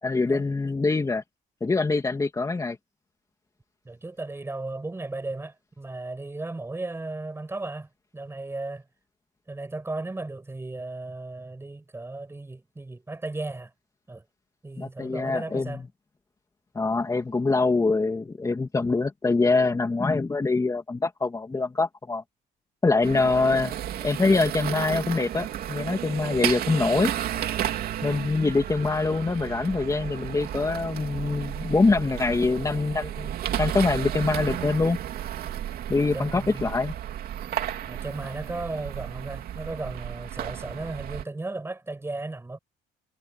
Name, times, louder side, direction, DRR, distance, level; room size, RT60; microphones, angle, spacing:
voice 1, 0.0-1.2 1.6-2.8 14.8-15.9 16.7-22.2 22.8-23.8 24.0-27.1 28.0-35.0 35.9-36.9, left 3 dB, 20° left, 2.9 m, -24 dB
voice 2, 3.8-8.8 9.5-13.7 14.1-14.2 14.6-15.8 36.1-36.7 37.9-42.6, right 2 dB, 15° right, 6.6 m, -35 dB
sound 1, 23.0-41.2, right 11 dB, 65° right, 2.8 m, -33 dB
cardioid pair, 110°, 17 cm